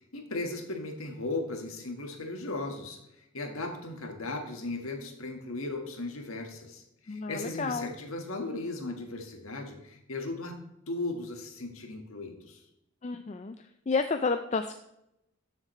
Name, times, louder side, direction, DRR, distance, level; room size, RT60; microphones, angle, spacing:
voice 1, 0.1-10.5 10.9-12.6, left 2 dB, 80° left, 3 dB, 1.7 m, -37 dB
voice 2, 7.1-7.9 13.0-13.6 13.9-14.7, left 4 dB, 30° left, 8 dB, 0.3 m, -30 dB
13.0 x 7.4 x 3.2 m, 0.85 s
head